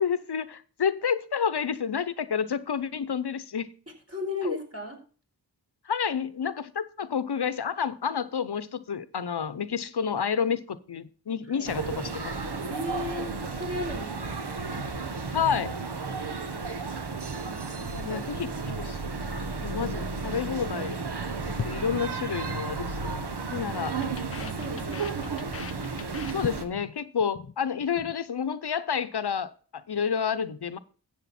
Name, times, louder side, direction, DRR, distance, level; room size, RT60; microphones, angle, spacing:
voice 1, 0.0-3.7 4.4-4.6 5.9-12.3 15.3-15.7 18.0-19.0 19.3-21.0 21.5-23.1 23.5-24.0 26.3-30.8, left 7 dB, 80° left, 0.8 m, -30 dB
voice 2, 4.1-5.0 11.5-12.0 12.7-14.4 17.4-18.2 21.6-22.0 23.7-23.9 24.4-25.3, left 2 dB, 35° right, 4.4 m, -36 dB
sound 1, 11.7-26.7, right 4 dB, 85° right, 1.3 m, -33 dB
sound 2, 21.6-22.7 23.0-23.3 23.6-27.0 27.2-27.5 27.8-28.2, left 7 dB, 40° left, 0.4 m, -39 dB
13.0 x 7.8 x 4.3 m
wide cardioid pair, 50°, 39 cm